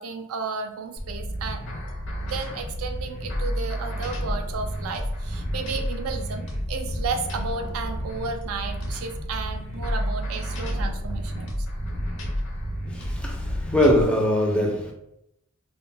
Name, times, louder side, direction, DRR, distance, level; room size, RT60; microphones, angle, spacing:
voice 1, 0.0-1.6 2.2-11.5, right 4 dB, 80° right, 0.4 m, -33 dB
sound 1, 1.0-14.0, equal, 60° left, 0.6 m, -30 dB
voice 2, 12.9-14.9, equal, 5° left, 0.4 m, -22 dB
2.1 x 2.0 x 3.7 m
head